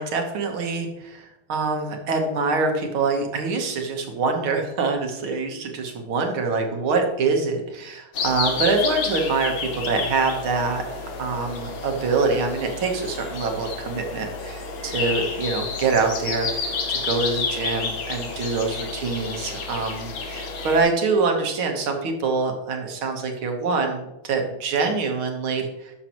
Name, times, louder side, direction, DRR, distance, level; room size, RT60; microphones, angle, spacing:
voice 1, 0.0-25.9, right 4 dB, 70° right, 3 dB, 2.1 m, -25 dB
sound 1, 8.1-20.8, left 4 dB, 65° left, 2.0 m, -30 dB
11.5 x 6.8 x 3.0 m, 0.93 s
omnidirectional pair, 2.4 m